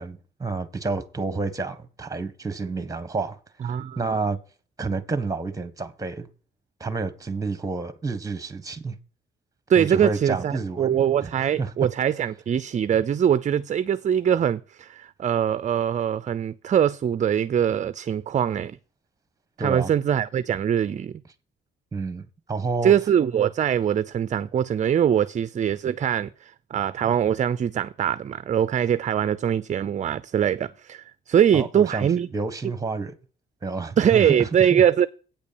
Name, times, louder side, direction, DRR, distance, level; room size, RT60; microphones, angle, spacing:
voice 1, 0.0-3.4 3.6-4.4 4.8-6.3 6.8-8.9 9.8-11.3 11.6-11.7 19.6-19.9 21.9-22.9 31.5-33.1 33.6-34.8, right 3 dB, 15° right, 1.3 m, -29 dB
voice 2, 3.6-4.1 9.7-18.8 19.6-21.2 22.8-32.3 34.0-35.1, right 9 dB, 35° right, 0.4 m, -22 dB
8.9 x 5.1 x 6.9 m
cardioid pair, 90°, 20 cm